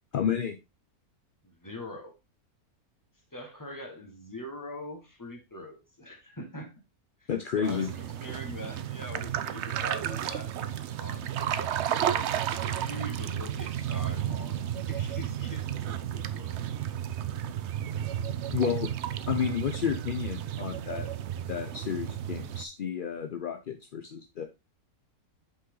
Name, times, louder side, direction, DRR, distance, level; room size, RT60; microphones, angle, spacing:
voice 1, 0.1-0.6 7.3-7.9 18.5-18.9 19.3-21.1 21.5-24.4, left 8 dB, 55° left, 6 dB, 0.6 m, -31 dB
voice 2, 1.4-2.2 3.3-6.8 7.2-12.3 12.6-16.7, equal, 15° left, 3 dB, 1.5 m, -43 dB
sound 1, 7.6-22.6, right 10 dB, 65° right, 0.8 m, -32 dB
6.0 x 5.6 x 3.8 m, 0.25 s
omnidirectional pair, 1.6 m